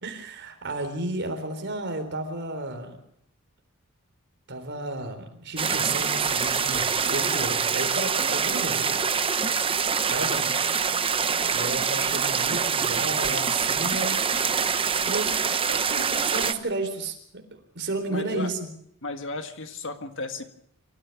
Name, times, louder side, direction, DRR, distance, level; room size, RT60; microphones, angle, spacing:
voice 1, 0.0-3.0 4.5-8.9 10.1-10.5 11.5-14.2 15.0-15.3 15.6-18.7, right 2 dB, 55° right, 5 dB, 3.9 m, -32 dB
sound 1, 5.6-16.5, right 6 dB, 25° right, 0.8 m, -25 dB
voice 2, 18.1-18.5 19.0-20.4, left 3 dB, 60° left, 7 dB, 1.8 m, -34 dB
26.5 x 14.0 x 7.2 m, 0.71 s
head